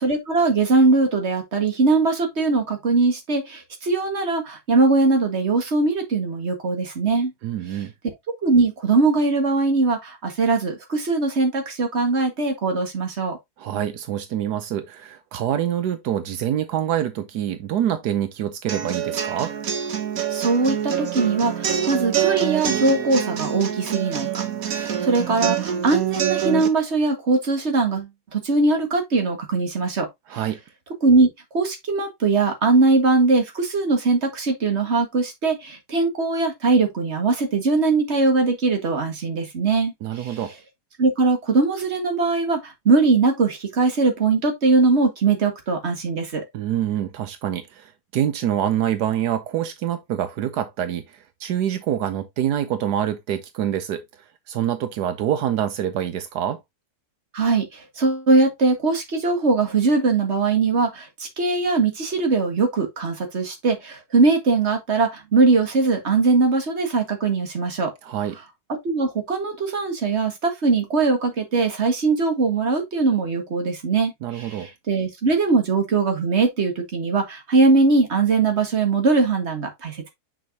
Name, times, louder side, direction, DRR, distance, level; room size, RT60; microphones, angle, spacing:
voice 1, 0.0-7.3 8.4-13.4 20.3-30.1 30.3-30.4 31.0-40.4 41.0-46.4 57.3-67.9 68.8-80.1, right 3 dB, 45° right, 2.1 m, -21 dB
voice 2, 7.4-7.9 13.6-19.5 30.3-30.6 40.0-40.5 46.5-54.0 54.5-56.6 68.0-68.4 74.2-74.7, right 10 dB, 80° right, 1.4 m, -26 dB
sound 1, 18.7-26.7, right 9 dB, 60° right, 1.5 m, -26 dB
6.3 x 6.1 x 2.8 m
omnidirectional pair, 1.7 m